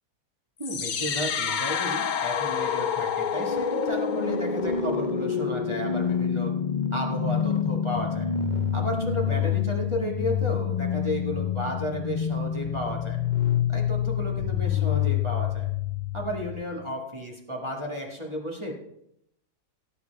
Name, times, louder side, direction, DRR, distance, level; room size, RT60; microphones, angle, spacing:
sound 1, 0.6-16.6, left 8 dB, 80° left, 0.4 m, -27 dB
voice 1, 0.6-6.5 6.9-8.3 8.7-13.2 13.7-15.7 16.1-18.7, equal, 20° right, -2 dB, 1.9 m, -33 dB
17.5 x 8.3 x 3.5 m, 0.77 s
omnidirectional pair, 1.7 m